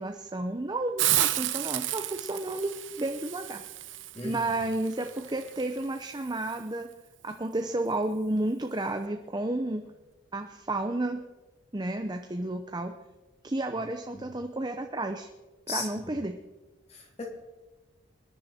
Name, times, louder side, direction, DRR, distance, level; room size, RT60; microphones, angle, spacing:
voice 1, 0.0-3.6 4.2-6.9 7.2-9.8 10.3-11.2 11.7-12.9 13.4-15.3 15.7-16.4, right 2 dB, 20° right, 5 dB, 0.7 m, -31 dB
Hiss, 1.0-6.6, right 14 dB, 65° right, 0.7 m, -32 dB
voice 2, 4.1-4.5 14.1-14.2 15.7-16.2 16.9-17.2, left 3 dB, 30° left, 0 dB, 3.2 m, -37 dB
26.0 x 11.0 x 4.4 m, 1.2 s
head